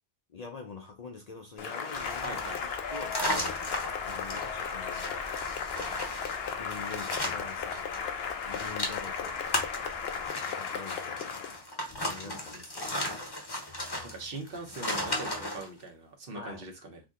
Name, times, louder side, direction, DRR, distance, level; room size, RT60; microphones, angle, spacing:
voice 1, 0.3-6.2 6.6-11.5 11.7-13.3 16.3-16.6, left 4 dB, 50° left, 0.5 m, -46 dB
Cheering / Applause, 1.6-11.6, left 6 dB, 75° left, 0.8 m, -35 dB
sound 1, 1.8-8.0 8.2-15.7, left 1 dB, 25° left, 0.8 m, -36 dB
sound 2, 1.9-10.3, right 2 dB, 30° right, 1.1 m, -52 dB
voice 2, 2.2-2.6 12.2-12.6 14.0-17.0, right 2 dB, 60° right, 1.1 m, -42 dB
2.7 x 2.7 x 3.6 m
omnidirectional pair, 1.1 m